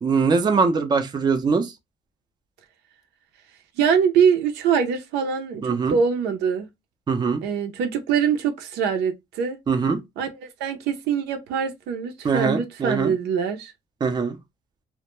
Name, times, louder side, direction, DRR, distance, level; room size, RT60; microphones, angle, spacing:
voice 1, 0.0-1.7 5.6-6.0 7.1-7.4 9.7-10.0 12.2-13.1 14.0-14.4, right 5 dB, 25° right, 0.5 m, -22 dB
voice 2, 3.8-5.6 5.9-6.7 7.4-9.6 10.2-13.7, right 7 dB, 80° right, 0.6 m, -23 dB
2.2 x 2.1 x 3.0 m
cardioid pair, 110°, 17 cm